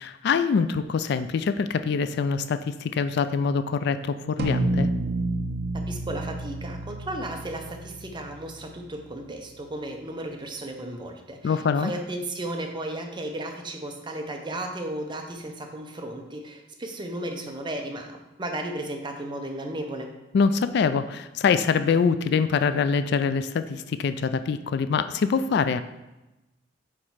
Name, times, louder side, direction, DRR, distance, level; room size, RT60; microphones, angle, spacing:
voice 1, 0.0-4.9 11.4-11.9 20.3-25.8, left 5 dB, 60° left, 11 dB, 0.3 m, -24 dB
sound 1, 4.4-9.0, right 1 dB, 60° right, 0.5 m, -29 dB
voice 2, 5.7-20.1, right 1 dB, 25° right, 3 dB, 0.7 m, -34 dB
4.9 x 4.4 x 5.6 m, 1.0 s
head